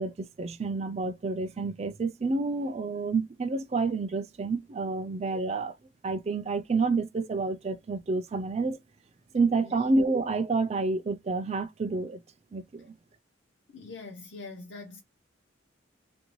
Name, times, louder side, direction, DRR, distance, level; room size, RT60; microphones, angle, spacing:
voice 1, 0.0-5.7 6.0-8.8 9.3-12.2 12.5-12.9, right 3 dB, 35° right, 0.3 m, -29 dB
voice 2, 13.7-15.0, left 3 dB, 65° left, 0.8 m, -43 dB
2.9 x 2.6 x 3.0 m
head